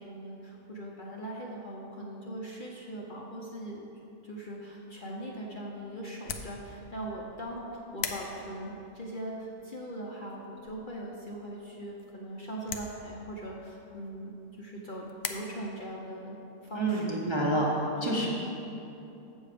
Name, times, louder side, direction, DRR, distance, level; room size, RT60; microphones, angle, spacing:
voice 1, 0.0-3.9 4.2-16.4 16.6-17.2 18.0-18.3, right 1 dB, 45° left, -3 dB, 0.8 m, -40 dB
sound 1, 4.8-15.3, left 7 dB, 75° left, 1.0 m, -44 dB
voice 2, 16.8-18.3, right 1 dB, 25° right, -4 dB, 0.6 m, -28 dB
7.2 x 7.1 x 5.0 m, 2.9 s
omnidirectional pair, 1.5 m